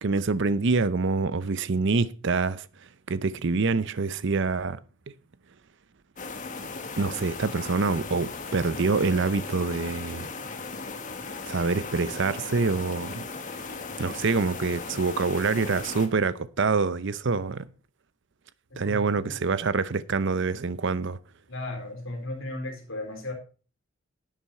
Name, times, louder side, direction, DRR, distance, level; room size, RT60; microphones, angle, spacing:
voice 1, 0.0-2.7 3.1-4.8 7.0-10.3 11.4-13.2 14.0-17.7 18.8-21.2, right 4 dB, 55° right, 0.6 m, -26 dB
sound 1, 6.2-16.1, left 4 dB, 35° left, 1.4 m, -37 dB
voice 2, 18.7-19.4 21.5-23.3, left 2 dB, 65° left, 4.0 m, -36 dB
11.0 x 7.3 x 5.5 m
head